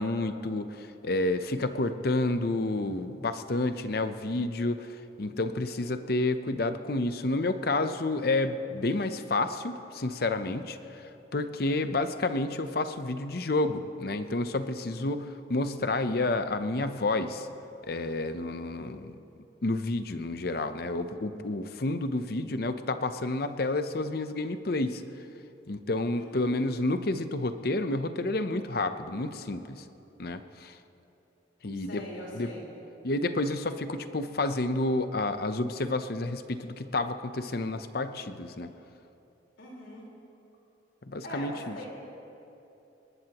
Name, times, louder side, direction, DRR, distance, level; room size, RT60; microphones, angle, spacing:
voice 1, 0.0-17.5 17.8-19.2 19.6-25.0 25.7-29.8 30.2-30.8 31.6-32.0 32.3-32.5 33.0-38.7 41.0-41.8, left 2 dB, 50° left, 9 dB, 0.7 m, -30 dB
voice 2, 5.6-6.0 26.1-26.5 31.7-32.7 39.6-40.1 41.2-41.9, left 1 dB, 85° left, -3 dB, 4.3 m, -42 dB
22.0 x 20.0 x 3.0 m, 2.9 s
head